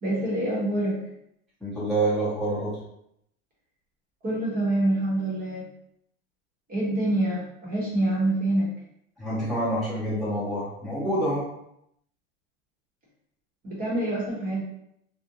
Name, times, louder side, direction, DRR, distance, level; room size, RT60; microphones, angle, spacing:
voice 1, 0.0-1.0 4.2-5.7 6.7-8.7 13.6-14.6, right 1 dB, 25° right, -5 dB, 0.9 m, -26 dB
voice 2, 1.6-2.8 9.2-11.4, right 1 dB, ahead, -10 dB, 0.8 m, -27 dB
2.5 x 2.1 x 2.7 m, 0.78 s
supercardioid pair, 130°, 34 cm